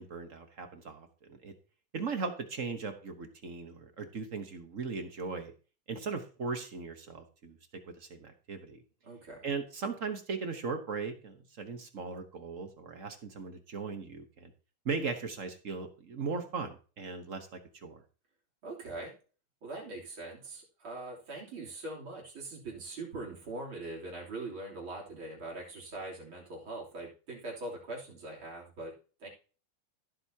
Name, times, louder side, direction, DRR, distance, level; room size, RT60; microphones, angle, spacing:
voice 1, 0.0-1.5 1.9-5.5 5.9-7.6 8.0-8.8 9.4-14.5 14.8-18.0, right 4 dB, 45° right, 7 dB, 1.3 m, -38 dB
voice 2, 9.0-9.5 18.6-19.1 19.6-29.3, right 2 dB, 80° right, -3 dB, 4.2 m, -42 dB
15.0 x 7.8 x 2.8 m, 0.37 s
omnidirectional pair, 2.2 m